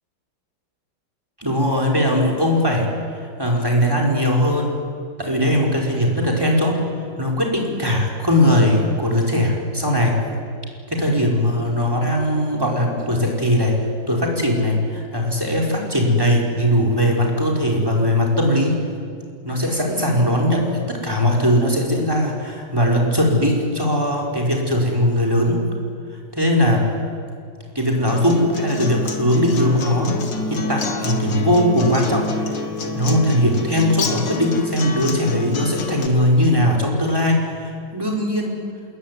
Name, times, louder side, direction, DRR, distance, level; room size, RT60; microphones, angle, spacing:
voice 1, 1.4-2.9 3.4-4.7 5.2-6.8 7.2-10.2 10.9-18.8 19.4-25.6 26.3-26.9 27.7-30.2 30.5-38.6, equal, 10° right, 0 dB, 4.9 m, -19 dB
Acoustic guitar, 28.1-36.1, left 3 dB, 65° left, 2.6 m, -27 dB
28.0 x 21.5 x 9.7 m, 2.3 s
omnidirectional pair, 2.2 m